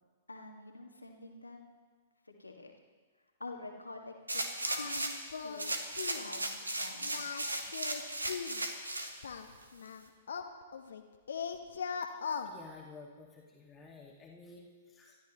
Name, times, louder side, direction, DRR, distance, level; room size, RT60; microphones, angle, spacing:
voice 1, 0.3-1.7 2.3-2.7 3.4-4.5 4.8-7.6, left 2 dB, 80° left, 2 dB, 1.9 m, -48 dB
sound 1, 4.3-5.3 5.6-9.1 9.6-9.7, right 1 dB, 80° right, 1.5 m, -36 dB
Singing, 4.7-5.0 5.3-5.7 6.0-6.3 7.0-8.6 9.2-11.0 11.3-12.5, left 6 dB, 65° left, 1.2 m, -39 dB
voice 2, 12.4-15.2, left 4 dB, 15° left, -3 dB, 2.0 m, -52 dB
27.0 x 12.5 x 3.1 m, 1.5 s
figure-of-eight pair, 110°, 0 cm